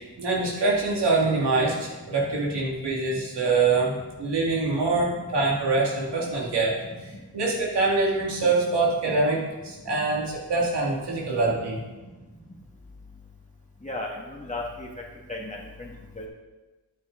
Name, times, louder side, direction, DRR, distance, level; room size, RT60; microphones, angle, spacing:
voice 1, 0.2-6.7 7.0-11.8, right 3 dB, 90° right, -3 dB, 2.4 m, -24 dB
voice 2, 13.8-14.9 15.3-15.9 16.2-16.3, left 2 dB, 20° left, -2 dB, 2.2 m, -34 dB
10.5 x 8.3 x 3.9 m, 1.2 s
cardioid pair, 60°, 40 cm